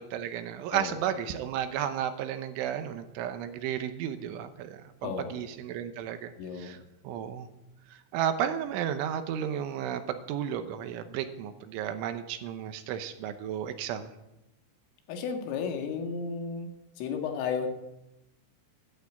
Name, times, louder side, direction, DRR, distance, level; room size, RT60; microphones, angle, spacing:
voice 1, 0.0-6.8 7.0-7.5 7.9-14.1, right 9 dB, 80° right, 9 dB, 3.3 m, -33 dB
voice 2, 0.7-1.4 5.0-5.4 6.4-6.8 15.1-16.7 17.0-17.7, left 6 dB, 80° left, 4 dB, 4.4 m, -34 dB
13.0 x 11.5 x 8.5 m, 0.92 s
omnidirectional pair, 5.7 m